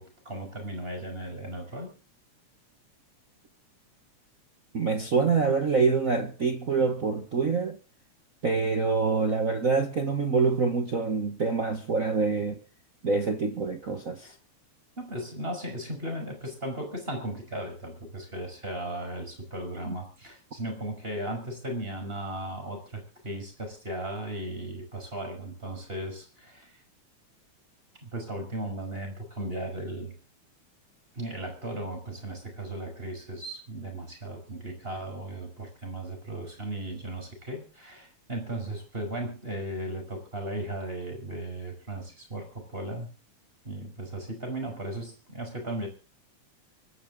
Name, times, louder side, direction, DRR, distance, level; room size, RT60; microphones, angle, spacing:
voice 1, 0.0-1.9 14.2-14.3 15.0-26.7 28.0-30.1 31.1-43.1 43.6-45.9, right 1 dB, 20° right, 5.9 m, -36 dB
voice 2, 4.7-7.8 8.4-12.6 13.0-14.3 19.9-20.0, right 4 dB, 45° right, 1.0 m, -26 dB
25.0 x 11.5 x 3.8 m
omnidirectional pair, 3.3 m